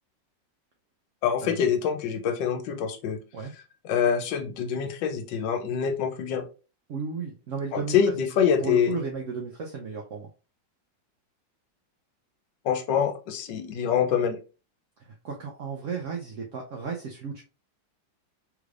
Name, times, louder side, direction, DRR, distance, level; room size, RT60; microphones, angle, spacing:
voice 1, 1.2-3.2 3.9-6.4 7.7-8.9 12.6-14.4, left 7 dB, 80° left, 6 dB, 1.3 m, -25 dB
voice 2, 6.9-8.1 8.6-10.3 15.0-17.4, right 5 dB, 70° right, 0 dB, 0.7 m, -34 dB
3.5 x 3.2 x 2.4 m, 0.33 s
omnidirectional pair, 2.0 m